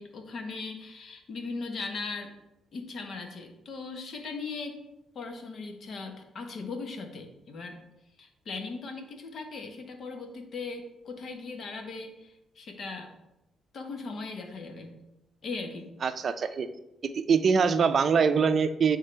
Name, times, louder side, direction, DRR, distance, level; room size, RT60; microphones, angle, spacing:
voice 1, 0.0-2.3 2.7-4.8 5.1-7.8 8.2-13.1 13.7-15.0 15.4-15.9, left 4 dB, 55° left, 4 dB, 1.1 m, -38 dB
voice 2, 16.0-16.7 17.0-19.0, right 6 dB, 50° right, 11 dB, 0.5 m, -24 dB
9.2 x 3.7 x 3.3 m, 0.89 s
cardioid pair, 90°, 0 cm